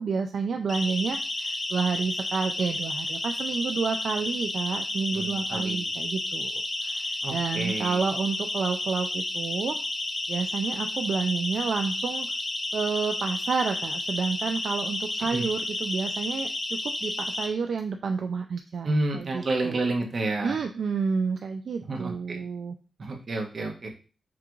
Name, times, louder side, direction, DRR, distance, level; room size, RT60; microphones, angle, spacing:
voice 1, 0.0-6.5 6.8-9.8 10.3-12.3 12.7-16.5 16.8-19.8 20.4-22.7, right 5 dB, 75° right, 5 dB, 0.3 m, -30 dB
Siren, 0.7-17.5, left 2 dB, 35° left, 0.9 m, -31 dB
voice 2, 5.1-5.8 7.2-8.0 15.3-15.5 18.8-20.6 21.9-22.4 23.0-23.9, right 2 dB, 50° right, 2 dB, 1.0 m, -30 dB
5.8 x 2.5 x 3.0 m, 0.35 s
wide cardioid pair, 125°, 0 cm